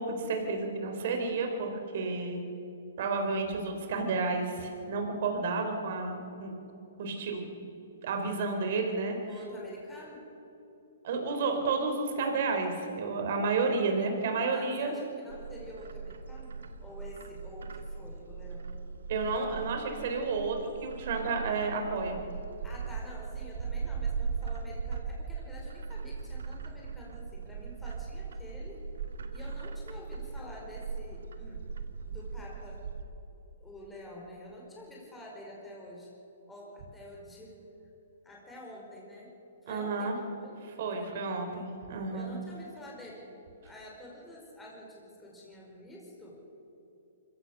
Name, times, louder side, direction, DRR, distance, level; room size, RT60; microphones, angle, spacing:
voice 1, 0.0-2.4 3.0-6.5 7.0-7.7 8.0-9.2 11.0-14.9 19.1-22.2 39.7-40.2 40.8-42.3, right 4 dB, 55° right, 4 dB, 4.0 m, -31 dB
voice 2, 9.3-10.2 14.5-18.7 22.6-28.8 29.3-31.6 32.0-32.9 33.6-36.1 36.5-37.6 38.2-39.3 39.6-40.7 41.0-41.3 42.1-43.3 43.6-46.4, left 1 dB, 5° left, -3 dB, 4.8 m, -48 dB
Bird, 15.3-33.0, right 5 dB, 80° right, 1.5 m, -39 dB
24.5 x 16.0 x 6.7 m, 2.9 s
hypercardioid pair, 150°, 0 cm